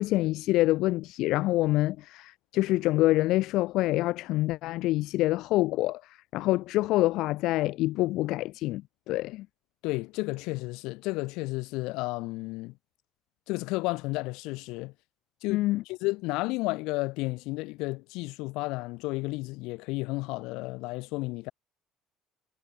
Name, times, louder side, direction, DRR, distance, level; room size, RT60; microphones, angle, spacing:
voice 1, 0.0-9.5 15.5-15.8, left 17 dB, 60° left, 1.7 m, -26 dB
voice 2, 9.8-12.7 13.5-14.9 15.4-21.5, left 23 dB, 75° left, 6.5 m, -32 dB
cardioid pair, 170°, 0 cm